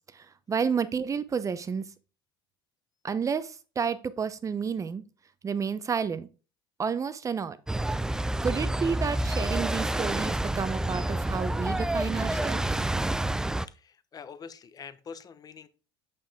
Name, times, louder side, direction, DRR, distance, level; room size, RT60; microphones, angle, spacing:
voice 1, 0.1-1.9 3.0-5.0 5.4-6.3 6.8-7.6 8.4-12.8, right 6 dB, 25° right, 0.7 m, -30 dB
sound 1, 7.7-13.7, right 1 dB, 5° right, 0.3 m, -28 dB
voice 2, 13.6-15.7, left 6 dB, 30° left, 0.8 m, -45 dB
6.8 x 5.6 x 3.5 m
hypercardioid pair, 85°, 12 cm